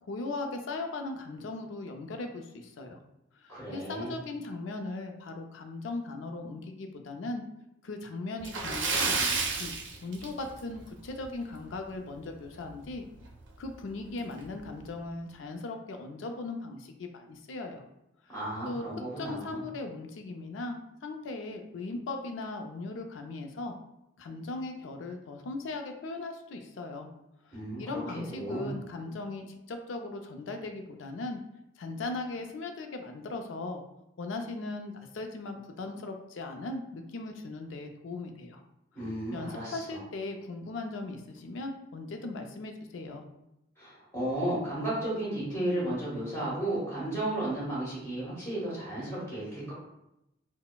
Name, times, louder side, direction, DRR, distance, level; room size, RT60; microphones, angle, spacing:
voice 1, 0.0-3.0 3.4-7.4 7.8-9.2 9.5-9.7 10.0-13.0 13.6-17.8 18.7-18.8 19.2-23.8 24.2-27.1 27.5-31.4 31.8-33.8 34.2-38.6 39.3-43.2, left 2 dB, 75° left, 5 dB, 0.4 m, -38 dB
voice 2, 3.5-4.2 18.3-19.6 27.5-28.7 38.9-40.0 43.8-49.7, right 1 dB, 15° left, -7 dB, 1.5 m, -34 dB
Splash splatter, 8.4-10.8 11.1-11.3 11.7-11.8 13.2-13.3 13.7-13.8 14.4-14.6, right 4 dB, 70° right, 0.5 m, -30 dB
3.9 x 2.0 x 2.3 m, 0.86 s
head